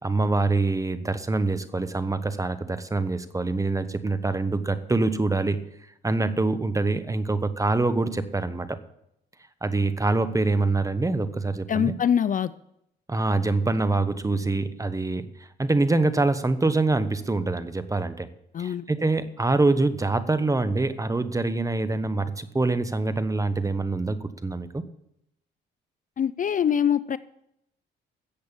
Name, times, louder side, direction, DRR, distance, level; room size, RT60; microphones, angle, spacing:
voice 1, 0.0-5.6 6.0-8.8 9.6-11.9 13.1-15.3 15.6-18.3 18.6-24.8, right 3 dB, 15° right, 12 dB, 1.1 m, -25 dB
voice 2, 11.7-12.5 18.5-18.8 26.2-27.2, left 8 dB, 40° left, 16 dB, 0.5 m, -23 dB
14.0 x 7.9 x 7.1 m, 0.79 s
cardioid pair, 90°, 20 cm